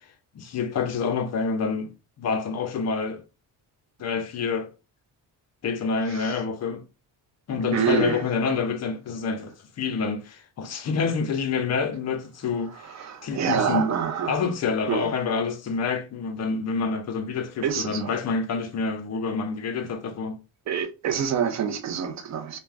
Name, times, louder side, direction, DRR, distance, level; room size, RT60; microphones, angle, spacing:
voice 1, 0.3-1.9 2.2-3.2 4.0-4.7 5.6-6.8 7.5-12.9 13.2-13.9 14.3-20.4, left 5 dB, 40° left, 0.4 m, -27 dB
voice 2, 6.1-6.4 7.7-8.3 9.4-9.5 12.7-14.4 14.9-15.1 17.6-18.1 20.7-22.6, right 7 dB, 40° right, 0.4 m, -27 dB
2.4 x 2.1 x 3.2 m
cardioid pair, 150°, 43 cm